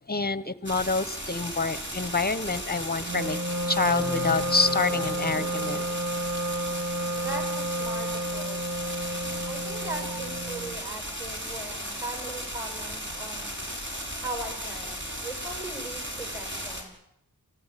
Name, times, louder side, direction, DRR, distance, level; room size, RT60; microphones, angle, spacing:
voice 1, 0.1-6.0, left 3 dB, 25° left, 1.2 m, -27 dB
sound 1, 0.7-16.8, equal, 30° right, 6.9 m, -36 dB
Wind instrument woodwind instrument, 3.0-10.8, right 1 dB, 50° right, 2.5 m, -31 dB
voice 2, 7.2-8.8 9.5-13.5 14.2-16.9, right 2 dB, 5° right, 6.9 m, -39 dB
28.5 x 16.0 x 9.4 m
wide cardioid pair, 65°, 36 cm